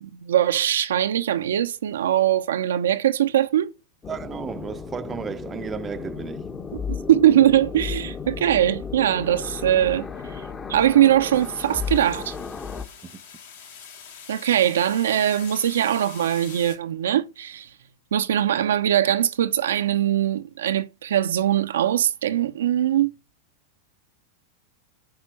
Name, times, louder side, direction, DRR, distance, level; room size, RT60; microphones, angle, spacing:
voice 1, 0.0-3.7 6.9-10.1 10.3-10.4 10.7-12.4 14.3-17.7 18.1-23.1, right 11 dB, 65° right, 0.7 m, -21 dB
sound 1, 4.0-12.8, left 5 dB, 20° left, 1.1 m, -34 dB
voice 2, 4.1-6.4 13.0-13.2, right 6 dB, 20° right, 0.7 m, -33 dB
sound 2, 11.3-16.8, left 7 dB, 60° left, 3.0 m, -44 dB
9.7 x 6.0 x 5.8 m
figure-of-eight pair, 90°, 0 cm